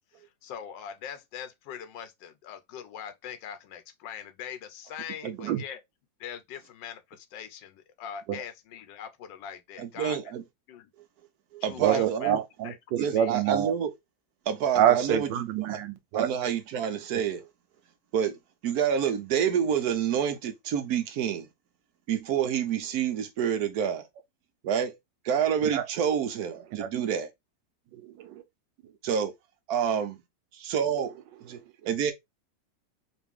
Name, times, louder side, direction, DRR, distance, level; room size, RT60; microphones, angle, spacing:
voice 1, 0.2-5.8 6.2-10.2 10.7-10.9 11.6-12.3 12.6-13.3, left 8 dB, 90° left, 1.3 m, -42 dB
voice 2, 9.8-10.4 11.5-12.4 13.0-13.9 14.5-15.8 16.1-17.5 18.1-18.4 18.6-21.5 22.1-24.1 24.6-24.9 25.2-27.3 29.0-29.3 29.7-30.2 30.5-31.1 31.4-31.6 31.8-32.1, right 8 dB, 70° right, 1.0 m, -28 dB
voice 3, 11.8-13.7 14.7-16.3 25.7-25.8 26.8-26.9 27.9-28.4, right 10 dB, 85° right, 1.4 m, -26 dB
4.0 x 2.5 x 3.4 m
omnidirectional pair, 1.9 m